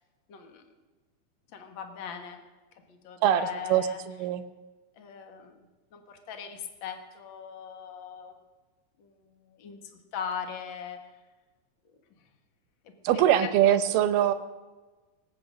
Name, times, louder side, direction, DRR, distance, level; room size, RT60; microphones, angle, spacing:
voice 1, 0.3-0.6 1.5-2.4 2.9-4.0 5.0-5.6 5.9-8.3 9.0-11.0 12.8-14.3, left 7 dB, 70° left, 5 dB, 1.1 m, -40 dB
voice 2, 3.2-4.4 13.0-14.3, right 11 dB, 75° right, 10 dB, 2.3 m, -23 dB
20.0 x 8.7 x 6.4 m, 1.3 s
omnidirectional pair, 4.4 m